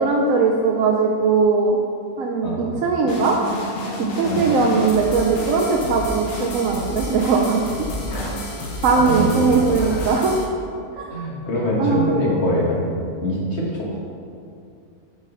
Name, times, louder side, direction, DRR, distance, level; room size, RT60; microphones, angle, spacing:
voice 1, 0.0-1.8 2.2-3.4 4.0-7.7 8.8-10.3 11.0-11.1 11.8-12.2, right 4 dB, 70° right, 0 dB, 0.9 m, -19 dB
voice 2, 2.4-2.8 4.2-4.4 8.1-8.3 8.9-9.3 9.7-10.1 11.1-14.0, equal, 45° left, -4 dB, 1.6 m, -24 dB
sound 1, 3.1-10.5, left 1 dB, 70° left, 1.5 m, -30 dB
8.2 x 6.1 x 3.9 m, 2.5 s
omnidirectional pair, 1.6 m